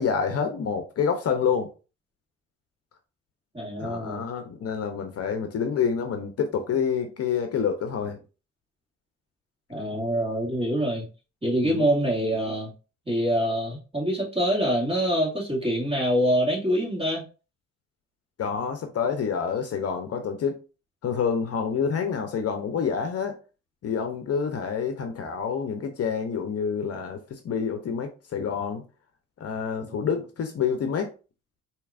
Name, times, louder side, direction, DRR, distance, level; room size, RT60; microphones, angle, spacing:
voice 1, 0.0-1.7 3.8-8.2 11.6-11.9 18.4-20.6 21.0-23.4 23.8-28.8 29.4-31.1, left 6 dB, 55° left, 0.7 m, -28 dB
voice 2, 3.5-4.3 9.7-11.1 11.4-12.7 13.1-17.2 29.9-30.1, equal, 20° right, 2.1 m, -25 dB
4.5 x 2.9 x 2.4 m
cardioid pair, 90°, 30 cm